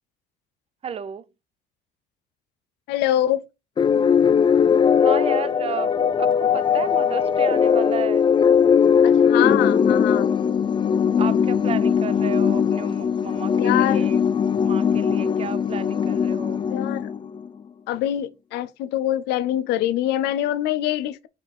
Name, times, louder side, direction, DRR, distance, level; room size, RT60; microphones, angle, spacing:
voice 1, 0.8-1.2 4.9-5.9 6.2-8.3 11.2-14.2 14.6-16.6, right 7 dB, 35° right, 0.5 m, -33 dB
voice 2, 2.9-3.4 9.0-10.3 13.5-14.1 16.6-17.1 17.9-21.3, left 12 dB, 90° left, 0.6 m, -24 dB
sound 1, 3.8-17.5, left 7 dB, 30° left, 0.4 m, -20 dB
5.4 x 4.9 x 4.2 m
cardioid pair, 110°, 17 cm